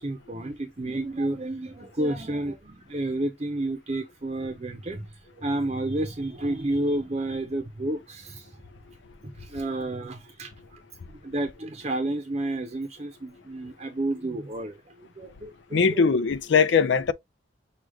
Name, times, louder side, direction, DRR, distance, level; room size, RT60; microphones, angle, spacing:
voice 1, 0.0-8.6 9.2-10.8 11.1-16.0, right 1 dB, 35° right, 0.7 m, -31 dB
voice 2, 15.7-17.1, left 5 dB, 80° left, 0.5 m, -21 dB
6.3 x 2.4 x 3.5 m
head